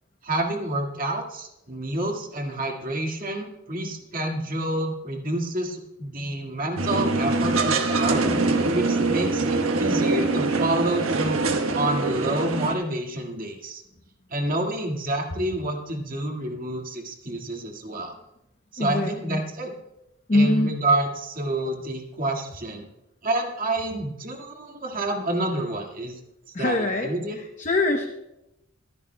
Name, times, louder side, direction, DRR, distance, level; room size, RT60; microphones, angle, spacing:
voice 1, 0.2-8.3 8.7-13.8 14.3-18.2 18.7-19.7 20.3-22.8 23.2-26.1 26.6-27.4, right 1 dB, 40° right, 1 dB, 1.8 m, -28 dB
sound 1, 6.8-12.8, right 3 dB, 80° right, 1.3 m, -24 dB
voice 2, 18.8-19.4 20.3-20.7 26.5-28.1, left 2 dB, 35° left, 4 dB, 0.8 m, -24 dB
24.0 x 10.5 x 2.2 m, 0.90 s
head